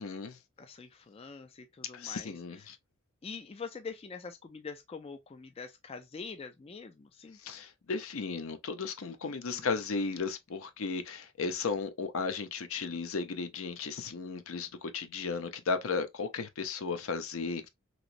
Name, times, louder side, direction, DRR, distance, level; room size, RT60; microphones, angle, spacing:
voice 1, 0.0-0.4 1.9-2.8 7.4-17.7, left 4 dB, 70° left, 0.6 m, -35 dB
voice 2, 0.6-2.6 3.2-7.4 9.3-9.7, left 5 dB, 25° left, 0.3 m, -45 dB
3.0 x 2.9 x 2.5 m
head